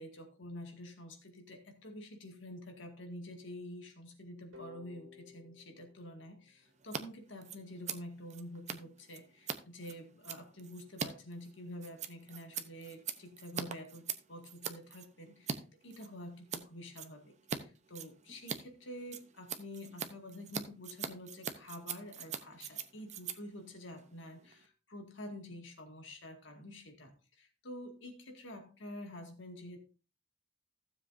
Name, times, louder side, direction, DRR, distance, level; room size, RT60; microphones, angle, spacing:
voice 1, 0.0-29.9, left 1 dB, 65° left, 3 dB, 2.1 m, -48 dB
sound 1, 4.5-7.3, left 5 dB, 75° right, 2.6 m, -57 dB
Scissors, 6.8-7.0 7.3-15.6 15.9-16.6 16.9-17.6 17.9-24.7, right 6 dB, 35° right, 0.7 m, -42 dB
15.5 x 7.4 x 2.6 m, 0.35 s
head